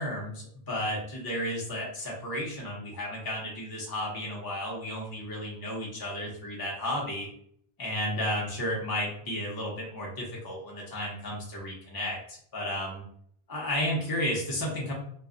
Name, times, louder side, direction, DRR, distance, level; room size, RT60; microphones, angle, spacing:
voice 1, 0.0-7.3 7.8-13.0 13.5-14.9, left 1 dB, 25° left, -3 dB, 0.6 m, -33 dB
2.2 x 2.1 x 3.6 m, 0.63 s
omnidirectional pair, 1.0 m